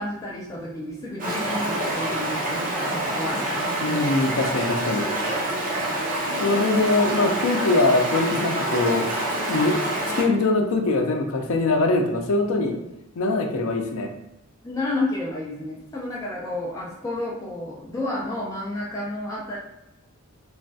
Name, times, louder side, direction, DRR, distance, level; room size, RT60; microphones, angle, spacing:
voice 1, 0.0-3.5 3.8-4.1 14.6-19.6, left 2 dB, 15° left, -5 dB, 0.4 m, -31 dB
Stream, 1.2-10.2, right 1 dB, 40° right, 0.7 m, -26 dB
voice 2, 3.8-5.1 6.4-9.1 9.5-9.8 10.2-12.7 13.2-14.1, left 2 dB, 75° left, 3 dB, 0.5 m, -22 dB
3.0 x 2.2 x 2.6 m, 0.88 s
head